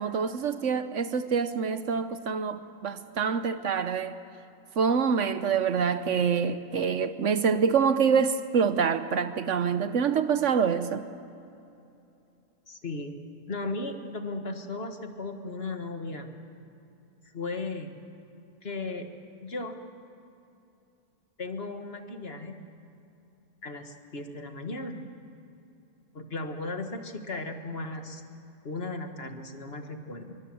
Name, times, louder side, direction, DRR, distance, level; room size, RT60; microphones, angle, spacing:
voice 1, 0.0-4.2 4.8-11.1, right 6 dB, 65° right, 1.1 m, -26 dB
voice 2, 12.7-13.1 13.5-16.3 17.3-17.9 18.6-19.1 19.4-19.8 21.4-22.6 23.6-25.1 26.1-28.2 28.6-30.4, left 2 dB, 45° left, 1.8 m, -36 dB
25.0 x 23.5 x 7.8 m
omnidirectional pair, 1.5 m